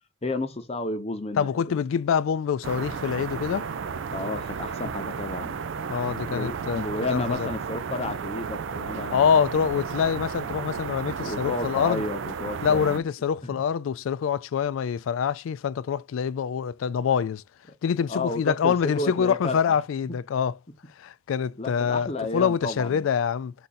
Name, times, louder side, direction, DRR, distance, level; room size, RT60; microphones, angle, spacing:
voice 1, 0.2-1.8 4.1-5.6 6.3-9.4 11.1-13.1 13.4-13.6 18.1-19.8 21.6-23.1, left 2 dB, 30° left, 0.8 m, -32 dB
voice 2, 1.4-3.6 5.9-6.8 7.1-7.5 9.1-12.0 12.6-17.4 17.8-20.5 21.0-23.5, left 7 dB, 80° left, 0.3 m, -25 dB
sound 1, 2.6-13.0, right 6 dB, 70° right, 0.4 m, -33 dB
4.8 x 2.6 x 4.1 m
head